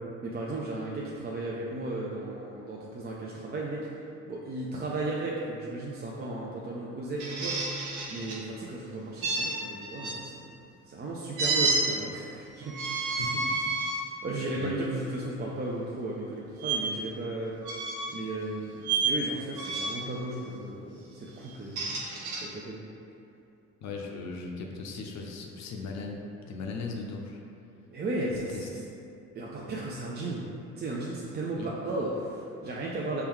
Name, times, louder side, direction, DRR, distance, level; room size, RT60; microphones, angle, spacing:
voice 1, 0.2-3.8 4.3-7.6 8.1-10.5 10.9-12.8 13.0-13.2 14.2-17.6 18.1-22.0 22.4-22.8 27.9-28.8 29.3-30.5 30.8-33.2, right 2 dB, 35° right, -4 dB, 0.4 m, -35 dB
sound 1, 7.2-8.4 9.2-10.2 11.4-11.8 12.6-14.0 14.6-14.8 16.6-16.8 17.6-18.2 18.8-19.1 19.6-20.1 21.5-22.4, right 3 dB, 80° right, 0.7 m, -30 dB
voice 2, 13.1-13.8 14.6-14.7 23.8-27.4 31.6-31.7, left 3 dB, 65° left, 1 dB, 0.6 m, -38 dB
4.5 x 2.2 x 3.6 m, 2.6 s
cardioid pair, 90°, 30 cm